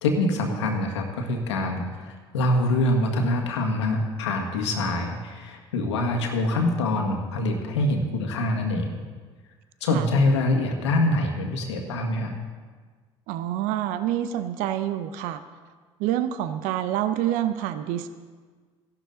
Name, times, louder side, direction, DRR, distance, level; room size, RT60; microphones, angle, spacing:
voice 1, 0.0-9.0 9.8-12.3, left 1 dB, 85° left, 2 dB, 1.7 m, -25 dB
voice 2, 13.3-15.4 16.0-18.1, right 12 dB, 70° right, 11 dB, 0.7 m, -27 dB
14.5 x 12.0 x 3.9 m, 1.5 s
hypercardioid pair, 65°, 14 cm